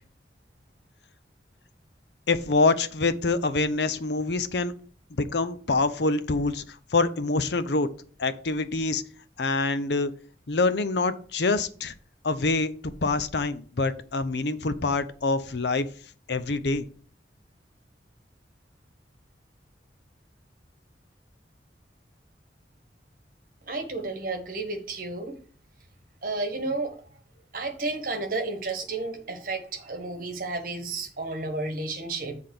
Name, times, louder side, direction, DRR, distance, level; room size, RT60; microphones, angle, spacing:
voice 1, 2.3-4.7 5.2-7.9 8.2-9.0 9.4-10.1 10.5-11.9 12.2-15.9 16.3-16.9, left 3 dB, 70° left, 12 dB, 0.7 m, -25 dB
voice 2, 23.7-25.3 26.2-26.9 27.5-32.4, right 3 dB, 50° right, 6 dB, 1.5 m, -32 dB
7.7 x 3.6 x 6.6 m, 0.43 s
head